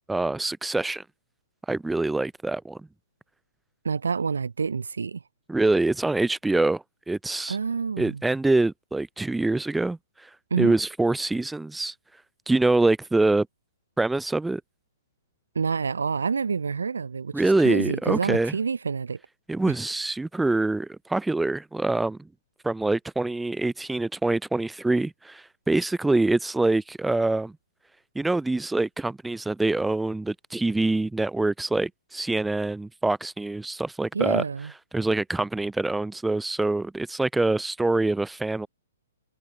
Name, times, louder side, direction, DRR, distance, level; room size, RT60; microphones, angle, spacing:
voice 1, 0.1-1.0 1.7-2.9 5.5-7.6 8.0-10.0 10.6-11.9 12.5-13.5 14.0-14.6 17.3-18.5 19.5-22.2 22.6-27.5 28.2-34.4 34.9-38.7, right 2 dB, 5° right, 0.4 m, -25 dB
voice 2, 3.8-5.2 7.5-8.2 10.5-10.7 15.5-17.3 17.6-19.2 34.1-34.7, right 5 dB, 75° right, 0.4 m, -27 dB
figure-of-eight pair, 120°, 0 cm